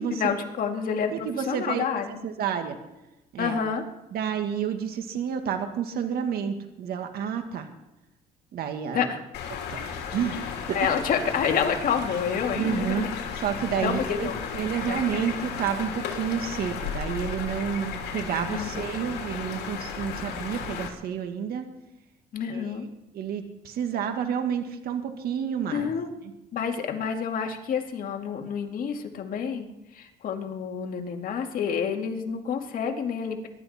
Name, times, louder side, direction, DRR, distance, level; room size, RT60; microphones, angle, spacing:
voice 1, 0.1-2.1 3.4-3.8 8.9-9.2 10.7-13.2 13.8-14.4 14.8-15.3 18.5-18.8 22.3-22.9 25.7-26.1 26.5-29.7 29.9-33.5, left 7 dB, 55° left, 3 dB, 2.3 m, -28 dB
voice 2, 1.1-1.8 2.2-2.8 3.3-3.5 4.1-7.7 8.5-9.1 9.7-9.8 10.1-10.4 10.7-10.9 12.6-13.1 13.4-21.7 22.5-22.7 23.1-25.9, right 8 dB, 65° right, 6 dB, 1.8 m, -30 dB
sound 1, 9.3-20.9, left 6 dB, 75° left, 3.1 m, -34 dB
22.5 x 12.0 x 4.3 m, 0.95 s
cardioid pair, 110°, 17 cm